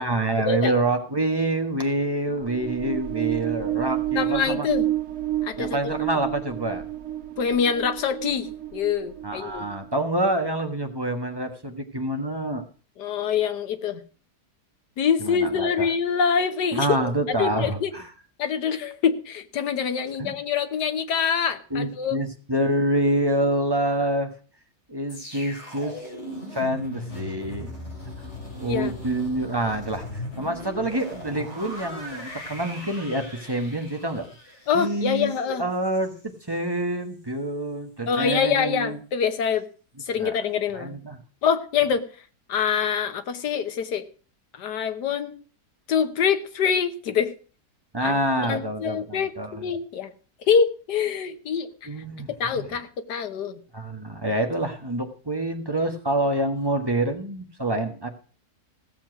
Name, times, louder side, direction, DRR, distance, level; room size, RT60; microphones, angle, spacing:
voice 1, 0.0-4.7 5.6-6.8 9.2-12.6 15.2-15.9 16.7-18.1 20.2-20.3 21.7-24.3 24.9-26.0 26.5-27.7 28.2-28.3 28.6-34.3 34.7-36.1 36.5-39.0 40.2-40.4 40.7-41.2 47.9-49.7 51.9-52.7 53.7-58.1, right 1 dB, 15° right, 4 dB, 1.3 m, -27 dB
sound 1, 2.3-10.0, right 13 dB, 75° right, 1.6 m, -30 dB
voice 2, 4.1-4.8 5.4-5.9 7.4-9.6 13.0-14.0 15.0-17.9 18.4-22.2 28.7-28.9 34.7-35.6 38.1-39.6 40.1-41.0 41.4-42.0 42.5-44.0 44.5-45.3 45.9-47.3 48.0-48.1 48.5-50.1 50.5-51.7 52.4-53.6, left 7 dB, 85° left, 9 dB, 1.7 m, -25 dB
sound 2, 25.1-36.2 36.5-36.7, left 1 dB, 40° left, 3.8 m, -38 dB
16.0 x 7.3 x 6.0 m, 0.40 s
omnidirectional pair, 1.8 m